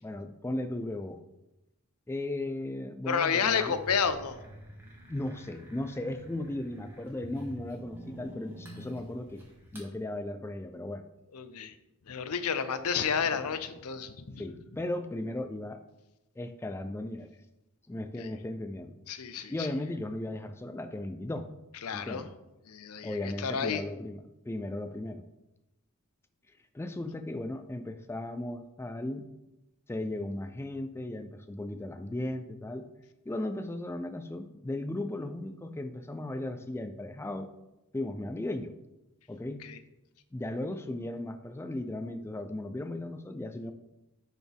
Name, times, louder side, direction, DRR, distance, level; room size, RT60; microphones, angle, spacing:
voice 1, 0.0-1.2 2.1-3.8 5.1-9.4 9.7-11.0 14.4-15.8 16.4-17.3 17.9-18.9 19.5-21.5 21.9-22.3 23.0-25.2 26.7-29.3 29.9-32.9 33.3-37.5 37.9-38.7 39.3-39.6 40.3-43.7, left 1 dB, 10° left, 8 dB, 0.3 m, -36 dB
voice 2, 3.1-4.4 11.3-11.7 12.1-14.4 18.2-18.3 19.1-19.7 21.8-22.2 22.7-23.8 39.6-39.8, left 6 dB, 75° left, 11 dB, 0.6 m, -31 dB
sound 1, 3.6-9.9, equal, 10° right, 1.5 m, -48 dB
10.0 x 4.3 x 3.5 m, 0.94 s
head